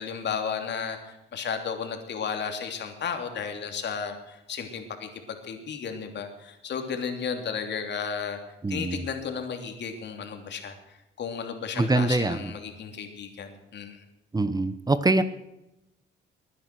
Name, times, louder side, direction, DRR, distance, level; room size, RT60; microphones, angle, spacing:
voice 1, 0.0-5.1 5.4-8.4 8.7-10.7 11.2-14.0, left 6 dB, 60° left, 5 dB, 3.1 m, -33 dB
voice 2, 8.6-9.0 11.7-12.5 14.3-15.2, right 2 dB, 20° right, 13 dB, 1.0 m, -24 dB
20.5 x 10.0 x 6.2 m, 0.90 s
cardioid pair, 90°, 20 cm